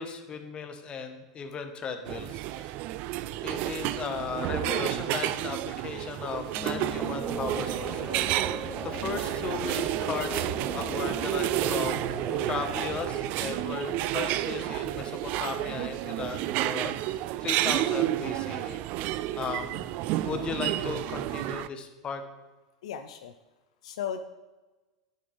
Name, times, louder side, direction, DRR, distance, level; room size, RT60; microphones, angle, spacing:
voice 1, 0.0-2.8 3.4-8.5 8.8-18.8 19.4-19.9 20.2-22.2, left 5 dB, 30° left, 7 dB, 1.3 m, -36 dB
sound 1, 2.0-21.7, right 15 dB, 50° right, 0.3 m, -31 dB
sound 2, 6.5-13.3, right 2 dB, 20° right, 2.8 m, -37 dB
voice 2, 22.8-23.3 23.8-24.2, left 9 dB, 70° left, 7 dB, 0.6 m, -35 dB
9.3 x 9.0 x 3.5 m, 1.2 s
hypercardioid pair, 95°, 3 cm